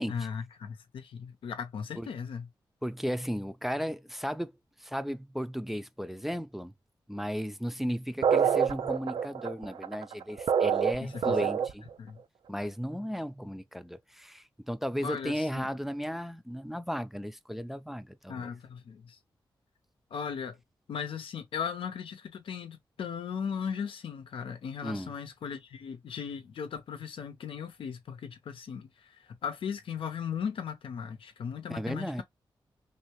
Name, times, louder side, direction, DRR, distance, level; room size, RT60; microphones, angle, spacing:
voice 1, 0.1-2.5 11.0-11.3 12.0-12.2 15.0-15.7 18.3-19.2 20.1-20.6 20.9-28.9 29.4-32.2, left 7 dB, 80° left, 0.7 m, -37 dB
voice 2, 2.8-4.5 4.8-6.7 7.1-11.9 12.5-18.5 24.8-25.1 31.7-32.2, equal, 5° right, 0.4 m, -35 dB
sound 1, 8.2-11.9, right 7 dB, 70° right, 0.4 m, -26 dB
3.2 x 2.7 x 3.0 m
cardioid pair, 55°, 9 cm